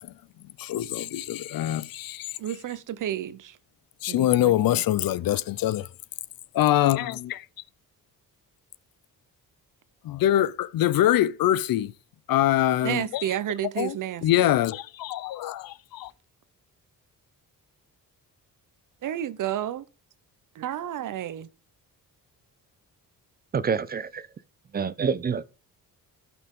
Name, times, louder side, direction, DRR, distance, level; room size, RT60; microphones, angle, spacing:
voice 1, 0.6-2.4 4.0-5.9 6.5-7.5 10.0-11.9 12.3-13.2 13.8-13.9 14.2-16.1, left 13 dB, 75° left, 0.6 m, -24 dB
voice 2, 2.4-3.6 4.1-4.8 12.8-14.5 19.0-19.8 20.5-21.5, right 11 dB, 60° right, 0.7 m, -31 dB
voice 3, 23.5-24.3 24.7-25.5, right 6 dB, 30° right, 0.4 m, -27 dB
15.5 x 6.0 x 3.6 m
wide cardioid pair, 155°, 35 cm